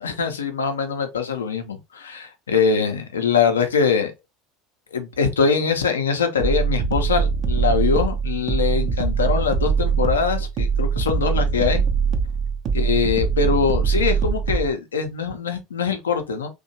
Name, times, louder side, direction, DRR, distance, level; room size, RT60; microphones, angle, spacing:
voice 1, 0.0-4.1 4.9-11.8 12.7-16.5, left 6 dB, 80° left, 0.5 m, -23 dB
sound 1, 6.4-14.7, right 6 dB, 50° right, 0.5 m, -22 dB
2.8 x 2.1 x 2.7 m
hypercardioid pair, 70°, 0 cm